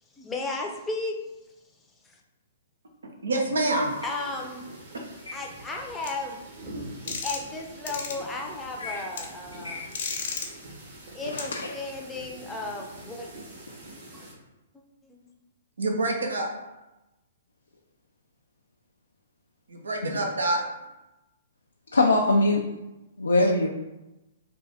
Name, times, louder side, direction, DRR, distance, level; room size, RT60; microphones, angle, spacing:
voice 1, 0.1-1.2 2.0-2.2 4.0-4.7 5.3-6.7 7.2-9.9 11.1-13.3 15.0-15.2, left 2 dB, 10° left, 0 dB, 0.6 m, -34 dB
voice 2, 3.0-3.9 15.8-16.5 19.7-20.6 23.4-23.7, right 2 dB, 75° right, 2 dB, 0.6 m, -27 dB
sound 1, 3.6-14.3, right 1 dB, 55° right, 1.2 m, -45 dB
sound 2, 6.0-6.1 7.1-7.5 7.9-8.1 9.2-9.3 9.9-10.5 11.4-11.5, left 5 dB, 60° left, 0.8 m, -32 dB
voice 3, 9.6-10.2 11.3-11.7 20.0-20.1 21.9-22.6 23.2-23.7, left 2 dB, 85° left, 0 dB, 0.4 m, -23 dB
3.5 x 2.5 x 3.4 m, 1.0 s
figure-of-eight pair, 120°, 0 cm